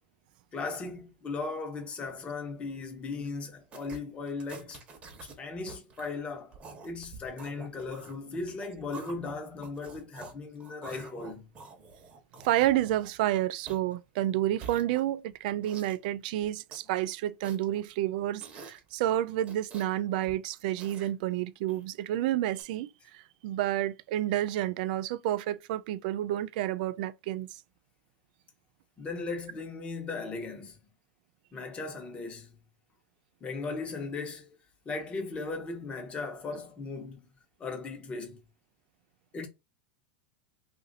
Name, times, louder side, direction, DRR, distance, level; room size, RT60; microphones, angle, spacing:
voice 1, 0.5-4.8 5.2-6.6 6.8-11.5 29.0-30.8 31.5-32.6 33.4-34.6 34.8-37.2 37.6-38.4 39.3-39.5, left 3 dB, 25° left, 1.0 m, -37 dB
sound 1, 3.7-4.0 4.3-5.3 5.6-6.1 6.5-10.3 10.6-13.3 13.7-13.9 14.5-15.3 15.6-16.1 16.4-16.9 17.4-17.9 18.4-18.9 19.4-19.9 20.2-21.1 21.7-22.0 22.6-22.7, right 4 dB, 25° right, 1.0 m, -48 dB
voice 2, 12.4-27.6, right 13 dB, 65° right, 0.3 m, -30 dB
2.7 x 2.5 x 3.9 m
supercardioid pair, 125°, 5 cm